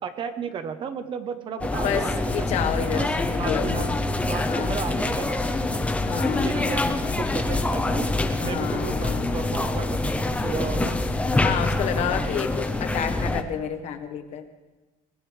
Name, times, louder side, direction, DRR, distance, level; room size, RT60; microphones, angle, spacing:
voice 1, 0.0-2.5 2.9-3.1 3.4-3.9 4.2-5.9 6.4-8.1 8.4-11.0, right 7 dB, 35° right, 9 dB, 1.0 m, -34 dB
sound 1, 1.6-13.4, left 2 dB, 10° left, 0.7 m, -25 dB
voice 2, 1.7-4.0 4.5-4.8 6.0-6.9 8.4-9.6 11.3-14.4, left 8 dB, 50° left, 8 dB, 1.2 m, -30 dB
22.0 x 18.5 x 3.4 m, 1.2 s
cardioid pair, 170°, 15 cm